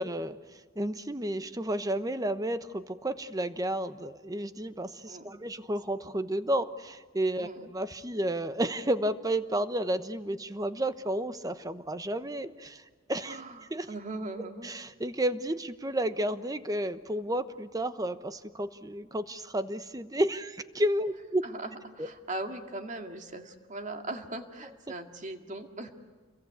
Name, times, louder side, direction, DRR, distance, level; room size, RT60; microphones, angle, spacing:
voice 1, 0.0-12.8 13.1-13.4 13.7-13.9 14.4-21.4 22.0-22.1, right 1 dB, 20° right, 11 dB, 1.0 m, -31 dB
voice 2, 5.1-5.4 7.4-7.7 13.2-14.7 21.4-25.9, right 2 dB, 40° right, 5 dB, 2.2 m, -39 dB
29.0 x 22.5 x 8.3 m, 1.5 s
head